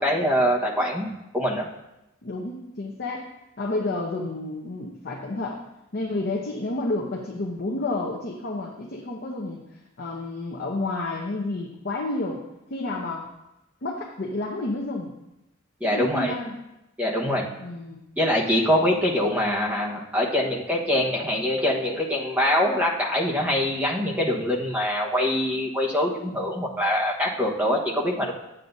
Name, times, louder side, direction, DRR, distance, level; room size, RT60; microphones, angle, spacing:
voice 1, 0.0-1.7 15.8-16.3 17.0-17.5 18.2-28.3, left 1 dB, 10° right, -3 dB, 1.1 m, -24 dB
voice 2, 2.2-3.3 3.6-5.6 5.9-9.6 10.0-12.4 12.7-13.3 13.8-15.1 15.8-16.6 17.6-18.0, left 2 dB, 55° left, -1 dB, 0.8 m, -30 dB
9.8 x 7.4 x 2.7 m, 0.92 s
head